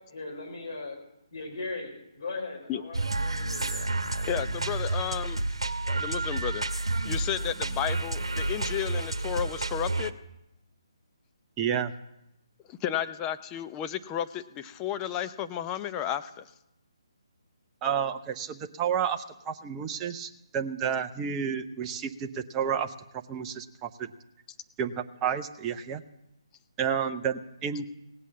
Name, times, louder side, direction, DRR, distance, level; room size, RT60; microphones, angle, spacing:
voice 1, 0.1-1.0 1.3-4.1, left 3 dB, 65° left, 2 dB, 4.3 m, -39 dB
sound 1, 2.9-10.1, right 2 dB, 85° right, 1.0 m, -30 dB
voice 2, 4.3-5.4 5.9-6.6 7.0-10.1 12.7-16.5, left 10 dB, 20° left, 9 dB, 0.6 m, -32 dB
voice 3, 11.6-11.9 17.8-22.9 23.3-24.1 24.8-26.0 26.8-27.9, right 8 dB, 15° right, 6 dB, 0.7 m, -30 dB
17.5 x 8.2 x 7.6 m, 0.85 s
figure-of-eight pair, 145°, 3 cm